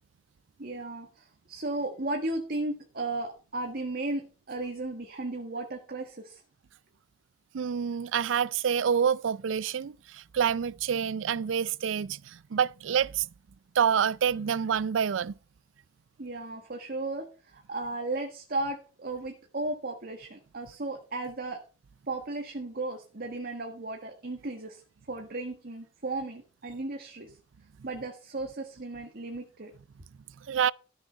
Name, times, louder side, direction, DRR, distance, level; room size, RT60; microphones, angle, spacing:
voice 1, 0.6-6.4 16.2-21.6 22.1-24.8 25.1-27.4 27.8-29.7, right 2 dB, 55° right, 1.6 m, -35 dB
voice 2, 7.5-13.3 13.7-15.3 30.5-30.7, right 7 dB, 80° right, 0.4 m, -27 dB
13.5 x 6.3 x 5.2 m
head